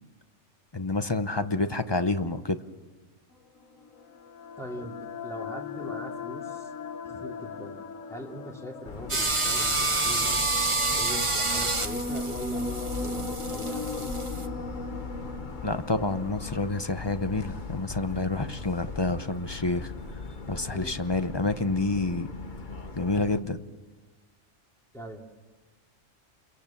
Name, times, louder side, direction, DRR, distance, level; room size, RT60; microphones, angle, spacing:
voice 1, 0.7-2.6 15.6-19.9 20.5-22.3 23.0-23.6, left 2 dB, 25° left, 10 dB, 0.8 m, -28 dB
sound 1, 3.6-17.7, left 3 dB, 90° left, 1.5 m, -38 dB
voice 2, 4.6-6.7 7.2-14.6 20.7-20.9 24.9-25.2, equal, ahead, -1 dB, 2.9 m, -42 dB
Motor vehicle (road) / Siren, 8.9-23.4, left 4 dB, 40° left, 1.4 m, -39 dB
sound 2, 9.1-14.5, right 3 dB, 25° right, 1.2 m, -28 dB
29.0 x 22.5 x 7.3 m, 1.2 s
omnidirectional pair, 1.3 m